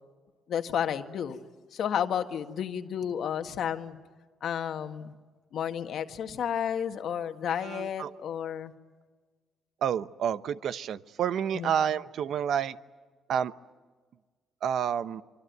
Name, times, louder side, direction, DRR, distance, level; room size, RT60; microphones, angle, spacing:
voice 1, 0.5-1.4 1.7-4.0 4.4-5.1 5.5-8.7 11.5-11.7, left 8 dB, 70° left, 7 dB, 1.7 m, -31 dB
voice 2, 7.6-8.1 9.8-12.8 13.3-13.5 14.6-15.2, right 8 dB, 70° right, 14 dB, 0.9 m, -29 dB
25.0 x 25.0 x 9.4 m, 1.4 s
cardioid pair, 90°, 0 cm